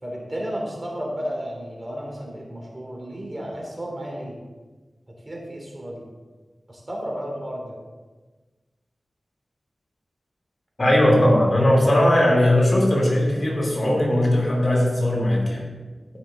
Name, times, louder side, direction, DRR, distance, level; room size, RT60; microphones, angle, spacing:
voice 1, 0.0-4.3 5.2-6.0 6.7-7.7, equal, 30° right, -1 dB, 3.1 m, -32 dB
voice 2, 10.8-15.7, left 1 dB, 45° left, -2 dB, 2.8 m, -19 dB
14.0 x 5.9 x 3.8 m, 1.3 s
cardioid pair, 55°, 0 cm